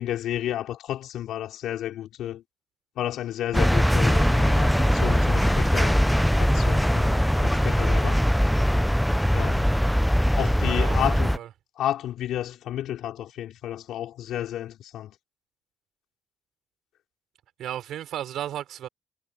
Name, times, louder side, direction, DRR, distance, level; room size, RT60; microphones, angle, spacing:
voice 1, 0.0-2.4 3.0-6.0 6.4-8.2 9.3-9.8 10.3-11.3 11.8-15.1, left 12 dB, 70° left, 4.9 m, -31 dB
sound 1, 3.5-11.4, equal, ahead, 0.5 m, -21 dB
voice 2, 10.7-11.5 17.6-18.9, right 11 dB, 65° right, 5.1 m, -35 dB
cardioid pair, 170°, 0 cm